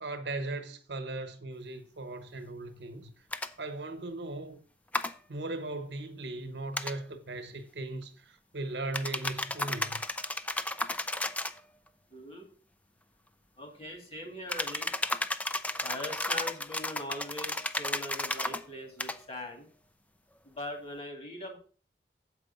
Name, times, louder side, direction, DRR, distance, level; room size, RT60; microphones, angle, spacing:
voice 1, 0.0-3.1 3.6-4.6 5.3-8.1 8.5-10.0, right 2 dB, 70° right, 1.1 m, -38 dB
sound 1, 3.3-3.5 4.9-5.1 6.7-6.9 8.9-11.6 14.5-18.6 19.0-19.2, left 2 dB, 10° left, 0.4 m, -33 dB
voice 2, 12.1-12.5 13.6-14.9 15.8-19.7 20.4-21.6, left 1 dB, 35° left, 2.6 m, -41 dB
7.9 x 4.8 x 6.6 m
head